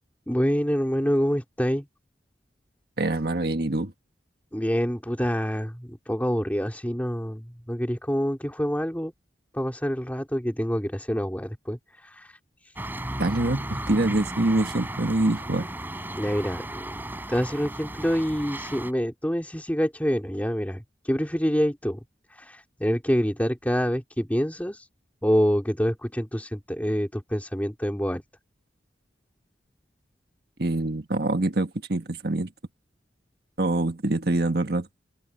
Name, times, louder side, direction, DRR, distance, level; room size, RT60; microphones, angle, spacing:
voice 1, 0.3-1.9 4.5-9.1 9.5-12.8 16.2-22.0 22.3-24.9 25.2-28.2, equal, 10° left, 3.6 m, -27 dB
voice 2, 3.0-3.9 13.2-15.7 30.6-32.5 33.6-34.9, right 2 dB, 55° right, 1.7 m, -25 dB
sound 1, 12.8-18.9, right 1 dB, 10° right, 7.3 m, -35 dB
head